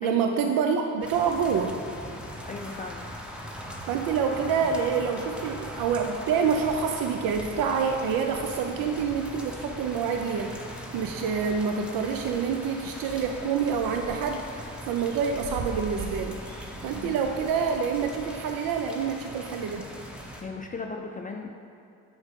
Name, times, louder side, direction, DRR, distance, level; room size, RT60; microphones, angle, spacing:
voice 1, 0.0-1.8 3.9-10.6 10.9-16.4 16.8-19.9, right 6 dB, 80° right, 5 dB, 0.5 m, -27 dB
sound 1, 1.0-20.4, equal, 5° right, 1.0 m, -40 dB
voice 2, 2.5-3.1 16.9-17.2 20.4-21.6, left 3 dB, 25° left, 3 dB, 0.4 m, -36 dB
sound 2, 6.6-10.6 11.1-11.9 12.2-18.1, right 3 dB, 55° right, 1.0 m, -44 dB
7.9 x 5.5 x 3.6 m, 2.5 s
supercardioid pair, 65°, 34 cm